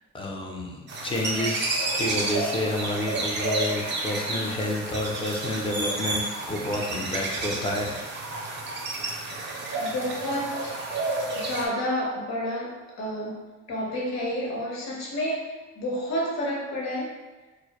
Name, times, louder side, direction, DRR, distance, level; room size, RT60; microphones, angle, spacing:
voice 1, 0.1-8.0, left 1 dB, 20° left, 0 dB, 0.4 m, -29 dB
sound 1, 0.9-11.7, right 2 dB, 40° right, 0.5 m, -30 dB
voice 2, 9.7-10.8 11.3-15.4 15.8-17.1, equal, 65° left, -4 dB, 0.8 m, -30 dB
2.1 x 2.0 x 2.8 m, 1.2 s
cardioid pair, 90°, 30 cm